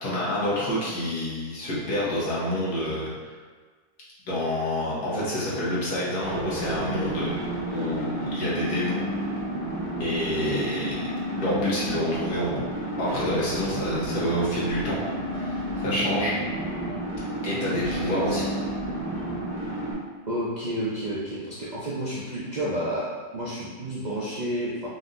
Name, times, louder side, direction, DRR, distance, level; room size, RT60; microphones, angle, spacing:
voice 1, 0.0-3.3 4.3-7.3 7.7-9.0 10.0-11.0 11.4-12.7 13.0-15.0 15.3-16.4 17.4-18.5, left 1 dB, 75° left, -7 dB, 1.6 m, -28 dB
sound 1, 6.2-19.9, right 1 dB, 40° right, 1.1 m, -31 dB
sound 2, 13.3-19.3, left 1 dB, 55° left, 1.0 m, -44 dB
voice 2, 17.8-18.4 20.3-23.1 23.3-24.9, right 1 dB, 70° right, -8 dB, 0.4 m, -30 dB
4.2 x 4.0 x 2.6 m, 1.4 s
omnidirectional pair, 1.7 m